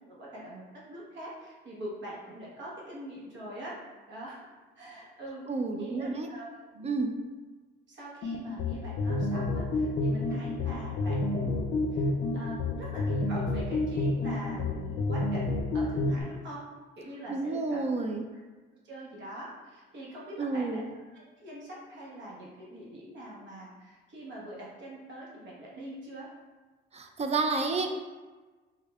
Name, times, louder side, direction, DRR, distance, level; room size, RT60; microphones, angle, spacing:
voice 1, 0.0-3.7 4.1-4.5 4.7-5.4 5.8-7.0 7.9-16.7 17.0-17.8 18.3-18.4 18.8-20.8 21.1-26.3, right 1 dB, 65° right, -5 dB, 1.2 m, -44 dB
voice 2, 5.5-6.3 6.8-7.1 17.3-18.3 20.4-20.8 26.9-27.9, right 3 dB, 35° right, 5 dB, 0.4 m, -30 dB
sound 1, 8.2-16.2, left 2 dB, 70° left, 0.5 m, -29 dB
3.6 x 3.3 x 2.3 m, 1.3 s
cardioid pair, 90°, 20 cm